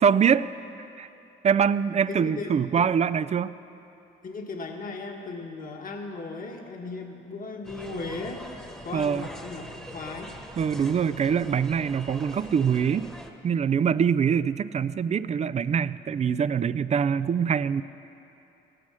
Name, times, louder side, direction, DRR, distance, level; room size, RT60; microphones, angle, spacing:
voice 1, 0.0-0.5 1.0-1.1 1.4-3.5 8.9-9.3 10.6-13.1 13.4-17.8, right 7 dB, 35° right, 15 dB, 0.4 m, -24 dB
voice 2, 2.1-2.9 4.2-8.4 8.8-10.4, left 3 dB, 45° left, 2 dB, 1.6 m, -37 dB
sound 1, 7.6-13.3, equal, 5° left, 1.3 m, -42 dB
15.5 x 12.5 x 6.2 m, 2.9 s
cardioid pair, 90°, 20 cm